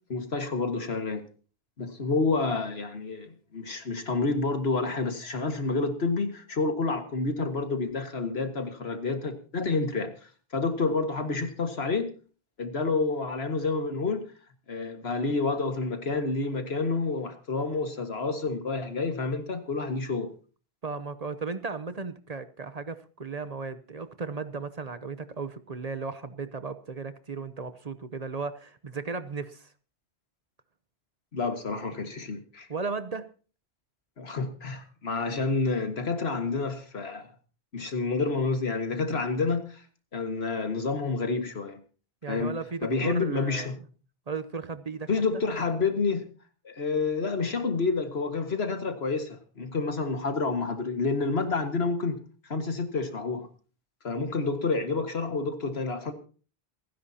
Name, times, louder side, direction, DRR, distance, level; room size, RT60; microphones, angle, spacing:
voice 1, 0.1-1.2 1.8-10.1 10.5-12.1 12.6-14.2 14.7-20.3 31.3-32.7 34.2-37.3 37.7-39.8 40.1-41.8 42.3-43.8 45.1-46.3 46.6-52.2 52.4-53.5 54.0-56.1, left 3 dB, 80° left, 7 dB, 2.0 m, -29 dB
voice 2, 20.8-29.7 32.7-33.3 42.2-43.7 44.3-45.1, right 4 dB, 40° right, 12 dB, 0.8 m, -35 dB
28.0 x 10.5 x 2.9 m, 0.38 s
omnidirectional pair, 1.0 m